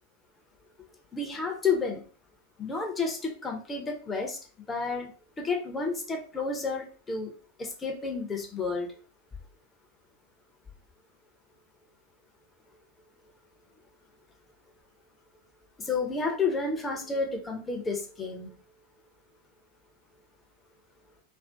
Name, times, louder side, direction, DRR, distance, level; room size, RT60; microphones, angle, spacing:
voice 1, 1.1-2.0 2.6-4.4 4.7-5.1 5.4-7.3 7.6-8.9 15.8-18.5, left 4 dB, 15° left, 2 dB, 0.7 m, -31 dB
2.6 x 2.4 x 3.4 m, 0.38 s
figure-of-eight pair, 90°, 0 cm